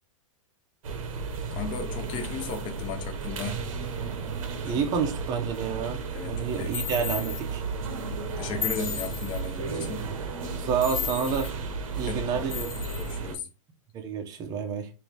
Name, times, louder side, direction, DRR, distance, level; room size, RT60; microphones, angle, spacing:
sound 1, 0.8-13.4, right 4 dB, 80° right, 0.9 m, -34 dB
voice 1, 1.5-3.7 4.6-4.8 6.1-6.7 8.4-10.0 12.0-12.6 13.0-13.5, left 5 dB, 25° left, 0.8 m, -36 dB
voice 2, 4.6-7.6 10.6-11.6 11.9-12.8 13.9-14.9, right 6 dB, 25° right, 0.7 m, -29 dB
sound 2, 6.7-7.4 8.6-9.5 10.8-11.5 12.5-13.1, left 8 dB, 85° left, 0.8 m, -34 dB
3.9 x 2.7 x 3.3 m
hypercardioid pair, 150°, 17 cm